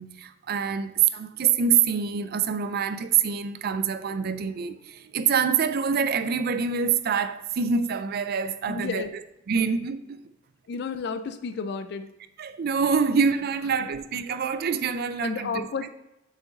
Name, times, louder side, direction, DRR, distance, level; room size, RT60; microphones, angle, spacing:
voice 1, 0.0-9.0 9.5-10.2 12.4-15.7, right 6 dB, 50° right, 0.4 m, -25 dB
voice 2, 8.7-9.1 10.7-12.1 15.2-15.9, left 5 dB, 60° left, 0.4 m, -31 dB
6.8 x 4.8 x 3.9 m
head